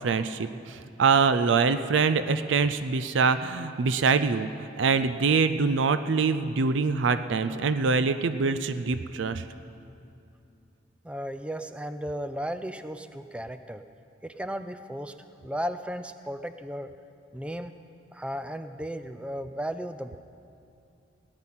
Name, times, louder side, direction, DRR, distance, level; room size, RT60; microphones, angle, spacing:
voice 1, 0.0-9.4, right 5 dB, 80° right, 11 dB, 0.5 m, -24 dB
voice 2, 11.0-13.8 14.2-15.1 15.4-16.9 17.3-17.7 18.1-20.2, equal, 5° right, 10 dB, 0.4 m, -35 dB
17.5 x 9.7 x 5.7 m, 2.5 s
head